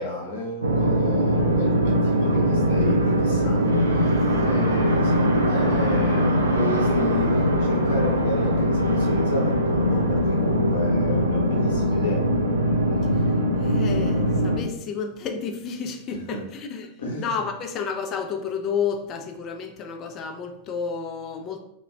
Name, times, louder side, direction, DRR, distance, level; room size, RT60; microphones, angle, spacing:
voice 1, 0.0-12.3 16.3-16.4 17.0-17.4, left 1 dB, 60° left, 0.7 m, -32 dB
sound 1, 0.6-14.6, equal, 75° right, 0.4 m, -21 dB
voice 2, 13.6-21.6, left 6 dB, 35° left, 0.4 m, -31 dB
2.3 x 2.1 x 3.1 m
figure-of-eight pair, 90°, 0 cm